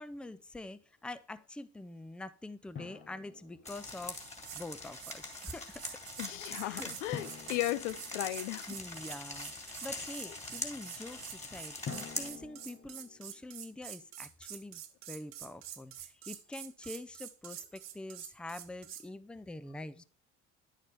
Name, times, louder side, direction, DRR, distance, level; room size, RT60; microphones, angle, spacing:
voice 1, 0.0-4.2 4.5-6.0 6.6-7.0 8.7-14.8 15.1-20.0, left 2 dB, 5° left, 0.5 m, -45 dB
Drum, 2.8-4.2 7.1-8.9 11.9-13.5, left 6 dB, 35° left, 1.4 m, -47 dB
sound 1, 3.6-12.3, left 2 dB, 20° left, 2.3 m, -43 dB
sound 2, 4.2-4.7 4.9-19.1, right 11 dB, 50° right, 1.1 m, -47 dB
voice 2, 6.2-8.7, left 16 dB, 75° left, 0.6 m, -36 dB
9.8 x 6.5 x 3.4 m
hypercardioid pair, 75°, 35 cm